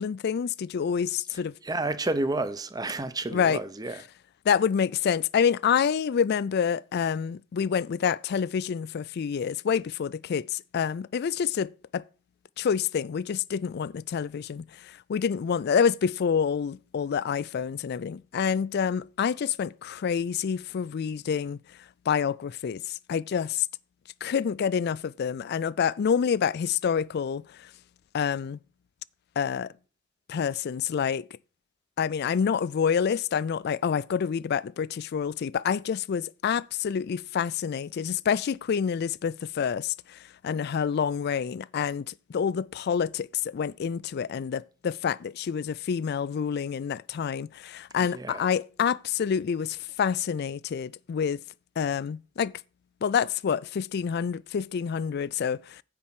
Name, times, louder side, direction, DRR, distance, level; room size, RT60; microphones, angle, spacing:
voice 1, 0.0-1.5 3.3-3.6 4.5-12.0 12.6-21.6 22.1-23.7 24.2-27.7 28.1-28.6 29.4-29.7 30.3-31.3 32.0-51.4 51.8-52.5 53.0-55.8, left 7 dB, 55° left, 0.3 m, -27 dB
voice 2, 1.3-4.0 48.0-48.5, right 2 dB, 20° right, 0.7 m, -31 dB
9.8 x 4.3 x 7.4 m
head